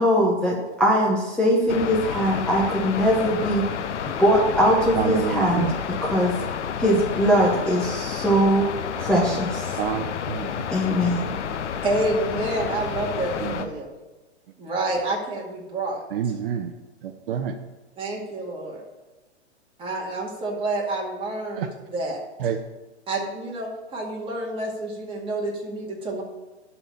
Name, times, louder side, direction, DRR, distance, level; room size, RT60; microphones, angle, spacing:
voice 1, 0.0-3.7 4.0-5.7 6.0-6.3 6.8-8.7 9.0-9.8 10.7-11.3, equal, 5° left, -4 dB, 1.0 m, -21 dB
sound 1, 1.7-13.7, left 7 dB, 85° left, 1.0 m, -30 dB
voice 2, 5.0-5.7 9.8-11.4 13.4-13.7 16.1-16.7 17.0-17.5 21.6-21.7 22.4-22.6, right 8 dB, 55° right, 7 dB, 0.8 m, -29 dB
voice 3, 11.8-13.9 14.6-16.0 18.0-18.8 19.8-22.2 23.1-26.2, right 2 dB, 15° right, -3 dB, 2.2 m, -28 dB
12.0 x 4.3 x 6.9 m, 1.2 s
hypercardioid pair, 140°, 35 cm